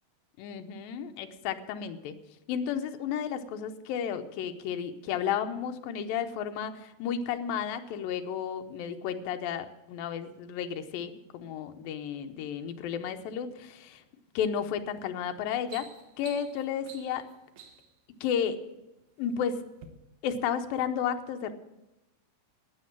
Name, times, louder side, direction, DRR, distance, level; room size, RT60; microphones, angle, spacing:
voice 1, 0.4-2.2 2.5-14.0 14.4-15.9 16.2-17.3 18.2-18.6 19.2-19.6 20.2-21.5, left 8 dB, 80° left, 7 dB, 2.5 m, -32 dB
sound 1, 14.7-15.0 15.4-18.0 18.8-19.3 19.7-19.9, right 7 dB, 65° right, 1.9 m, -50 dB
12.0 x 9.1 x 7.3 m, 0.96 s
omnidirectional pair, 4.1 m